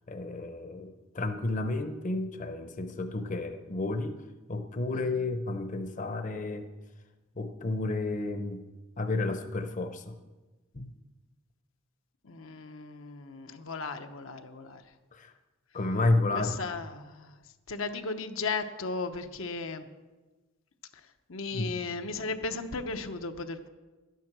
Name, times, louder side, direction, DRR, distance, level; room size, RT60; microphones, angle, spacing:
voice 1, 0.1-4.2 4.5-6.7 7.4-8.6 9.0-10.1 10.7-10.9 15.1-15.3 15.7-16.6 21.5-21.8, left 2 dB, 40° left, 8 dB, 0.8 m, -31 dB
voice 2, 4.9-5.2 12.2-14.8 16.3-17.4 17.7-19.9 20.9-23.7, left 3 dB, 75° left, 7 dB, 0.9 m, -36 dB
12.5 x 9.4 x 6.0 m, 1.2 s
head